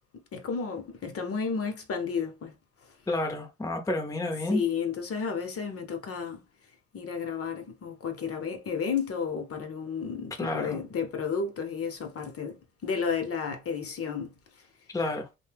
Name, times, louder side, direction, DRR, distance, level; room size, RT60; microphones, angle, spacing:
voice 1, 0.3-2.5 4.5-6.4 6.9-14.3, left 6 dB, 50° left, 0.8 m, -32 dB
voice 2, 3.1-4.6 10.4-10.8 14.9-15.3, left 2 dB, 10° left, 0.7 m, -30 dB
2.7 x 2.2 x 3.3 m
cardioid pair, 90°, 30 cm